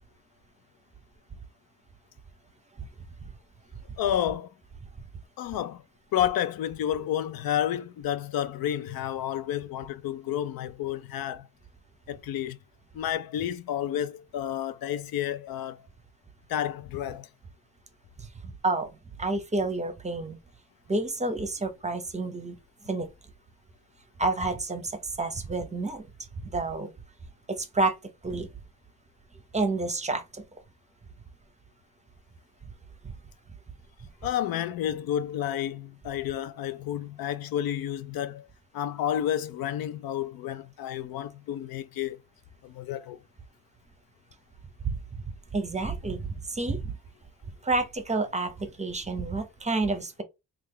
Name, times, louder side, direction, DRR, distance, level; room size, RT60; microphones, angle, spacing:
voice 1, 4.0-4.5 5.4-5.8 6.1-11.5 12.1-12.6 12.9-15.9 16.5-17.3 34.2-38.5 38.7-42.2 42.6-43.2, left 11 dB, 90° left, 0.5 m, -30 dB
voice 2, 19.2-20.4 20.9-22.6 22.8-23.1 24.2-24.9 25.2-26.1 26.4-26.9 27.5-27.9 28.2-28.5 29.5-30.4 33.0-33.1 45.5-46.9 47.6-50.2, right 2 dB, 20° right, 0.6 m, -29 dB
3.2 x 2.4 x 3.6 m
cardioid pair, 120°, 34 cm